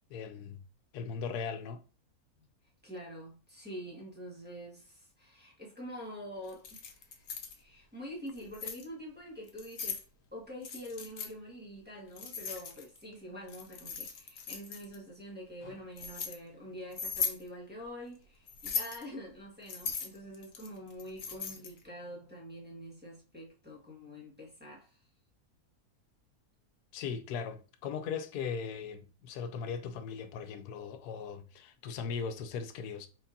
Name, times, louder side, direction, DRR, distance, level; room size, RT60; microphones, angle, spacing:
voice 1, 0.1-0.6 0.9-1.8 26.9-33.1, left 6 dB, 85° left, 1.1 m, -38 dB
voice 2, 2.3-10.0 10.3-25.1, equal, 5° right, 1.5 m, -46 dB
Keys jangling, 6.5-7.6 8.3-8.8 9.5-10.0 10.6-11.3 12.2-13.0 13.5-15.0 15.6-16.3 16.9-17.4 18.5-19.0 19.7-21.8, left 6 dB, 60° left, 1.2 m, -38 dB
4.6 x 4.3 x 2.6 m
omnidirectional pair, 1.6 m